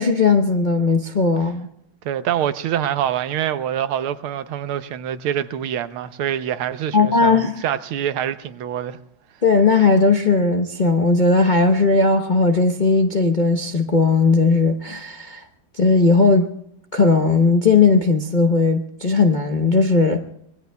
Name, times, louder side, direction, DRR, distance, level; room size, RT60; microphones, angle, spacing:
voice 1, 0.0-1.7 6.9-7.5 9.4-15.4 15.8-16.5 16.9-20.2, left 4 dB, 45° left, 0.6 m, -17 dB
voice 2, 2.0-9.0, right 10 dB, 90° right, 1.7 m, -25 dB
25.5 x 20.5 x 2.3 m
omnidirectional pair, 2.3 m